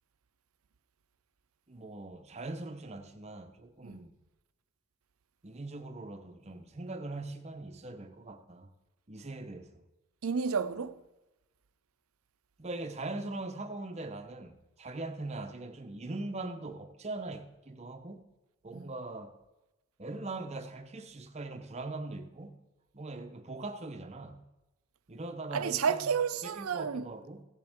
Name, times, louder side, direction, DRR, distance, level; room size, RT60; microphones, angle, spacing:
voice 1, 1.7-4.1 5.4-8.7 9.1-9.8 12.6-18.2 18.6-19.3 20.0-22.5 22.9-24.5 25.1-26.1 26.4-27.4, right 2 dB, 30° right, 0.7 m, -41 dB
voice 2, 10.2-10.9 18.7-18.8 25.5-27.0, right 6 dB, 80° right, 0.5 m, -31 dB
15.5 x 7.7 x 3.6 m
head